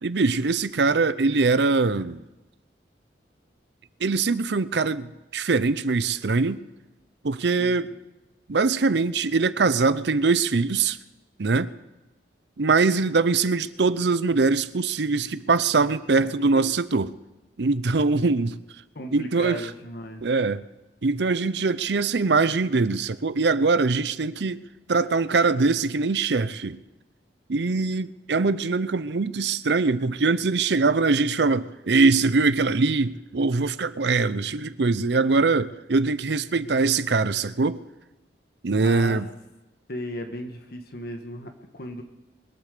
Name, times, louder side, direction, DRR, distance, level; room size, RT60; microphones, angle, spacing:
voice 1, 0.0-2.2 4.0-6.6 7.2-7.9 8.5-11.0 11.4-11.7 12.6-17.1 17.6-18.6 19.1-19.7 20.2-20.6 21.0-24.6 24.9-26.8 27.5-37.8 38.6-39.3, right 4 dB, 70° right, 0.6 m, -22 dB
voice 2, 7.6-7.9 16.2-16.6 18.9-20.3 38.8-39.2 39.9-42.0, left 1 dB, 55° left, 1.6 m, -36 dB
22.0 x 8.5 x 6.7 m
head